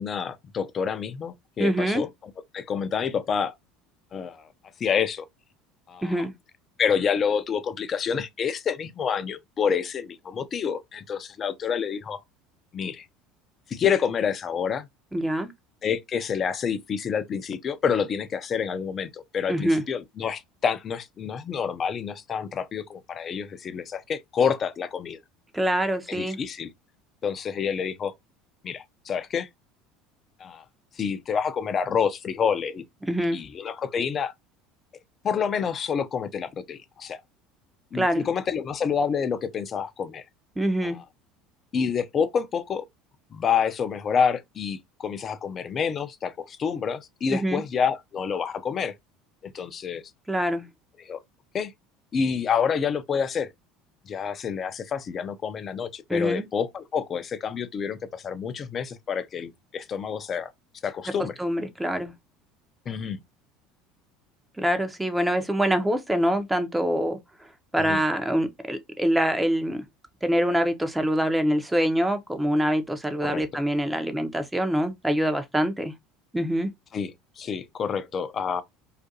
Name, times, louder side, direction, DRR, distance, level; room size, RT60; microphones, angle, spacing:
voice 1, 0.0-2.1 2.5-3.5 4.1-4.5 4.8-5.3 5.9-6.2 6.8-12.2 12.7-13.1 13.7-14.9 15.8-25.2 26.1-26.7 27.2-28.1 28.6-29.5 30.4-30.6 31.0-32.8 33.3-34.3 35.2-37.2 37.9-40.2 40.8-41.0 41.7-42.8 43.3-48.9 49.5-50.0 51.0-51.2 51.5-51.7 52.1-53.5 54.1-60.5 60.8-61.3 62.9-63.2 67.8-68.0 73.2-73.4 76.9-78.6, left 7 dB, 40° left, 0.4 m, -28 dB
voice 2, 1.6-2.0 6.0-6.3 15.1-15.5 19.5-19.8 25.5-26.4 33.0-33.4 37.9-38.3 40.6-41.0 47.3-47.6 50.3-50.7 56.1-56.4 61.4-62.1 64.6-67.2 67.7-69.8 70.2-75.9 76.3-76.7, equal, 10° right, 0.5 m, -25 dB
2.5 x 2.4 x 2.6 m
hypercardioid pair, 75°, 0 cm